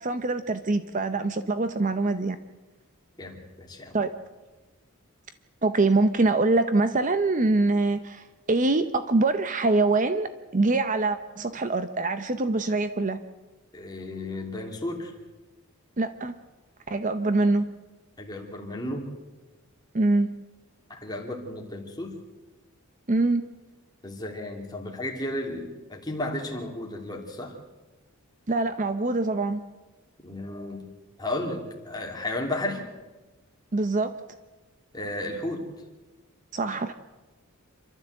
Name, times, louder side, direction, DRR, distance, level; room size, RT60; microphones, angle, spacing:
voice 1, 0.0-2.4 3.9-4.2 5.6-13.2 16.0-16.4 16.9-17.7 19.9-20.3 23.1-23.4 28.5-29.6 33.7-34.1 36.5-36.9, right 2 dB, 35° right, 10 dB, 0.7 m, -24 dB
voice 2, 3.2-4.0 13.7-15.1 18.2-19.1 20.9-22.2 24.0-27.6 30.2-30.9 31.2-32.9 34.9-35.7, left 1 dB, 20° left, 0 dB, 2.9 m, -33 dB
28.0 x 12.5 x 7.9 m, 1.2 s
head